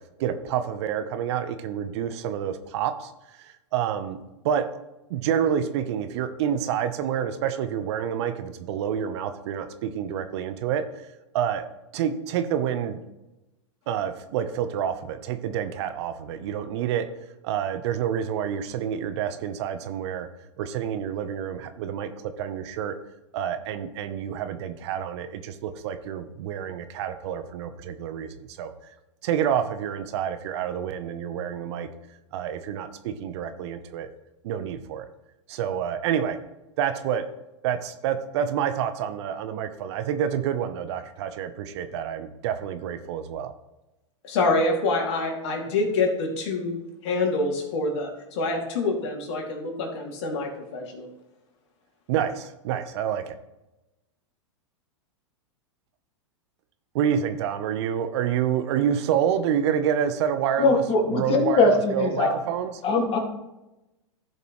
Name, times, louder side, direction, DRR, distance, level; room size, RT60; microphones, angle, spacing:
voice 1, 0.2-3.1 3.4-4.7 5.1-10.9 11.3-11.7 11.9-13.0 13.9-17.1 17.4-20.3 20.6-23.0 23.3-28.7 29.2-31.9 32.3-34.1 34.4-35.1 35.5-36.4 36.8-37.3 37.6-43.5 52.1-53.4 56.9-62.7, right 9 dB, 60° right, 10 dB, 0.9 m, -28 dB
voice 2, 44.2-51.1, left 3 dB, 60° left, 1 dB, 2.5 m, -26 dB
voice 3, 60.6-62.3 62.8-63.2, left 3 dB, 35° left, 2 dB, 2.2 m, -21 dB
15.0 x 5.4 x 3.1 m, 0.99 s
hypercardioid pair, 105°, 16 cm